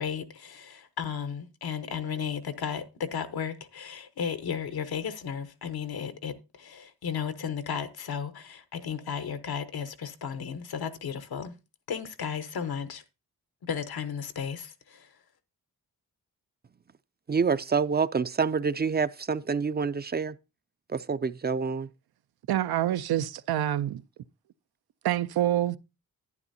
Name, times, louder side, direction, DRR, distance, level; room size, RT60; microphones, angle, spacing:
voice 1, 0.0-11.5 11.9-13.0 13.6-15.2, left 7 dB, 80° left, 1.0 m, -34 dB
voice 2, 17.3-20.4 20.9-21.9, right 5 dB, 30° right, 0.4 m, -27 dB
voice 3, 22.5-24.0 25.0-25.8, right 12 dB, 85° right, 0.5 m, -26 dB
11.0 x 9.4 x 2.7 m
cardioid pair, 60°, 37 cm